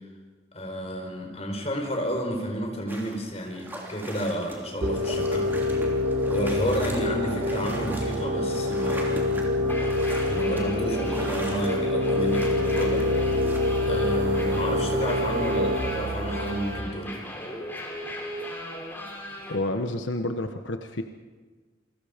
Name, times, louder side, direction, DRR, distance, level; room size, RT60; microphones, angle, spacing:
voice 1, 0.5-5.6 6.2-9.4 10.3-13.4 13.9-17.2, equal, 35° left, 2 dB, 4.7 m, -31 dB
sound 1, 2.9-13.6, right 1 dB, 10° right, 3.2 m, -41 dB
sound 2, 4.8-16.8, left 1 dB, 75° right, 3.5 m, -26 dB
sound 3, 9.6-19.6, left 1 dB, 10° left, 3.8 m, -37 dB
voice 2, 19.5-21.0, left 1 dB, 85° left, 6 dB, 1.2 m, -29 dB
29.0 x 22.5 x 5.2 m, 1.4 s
head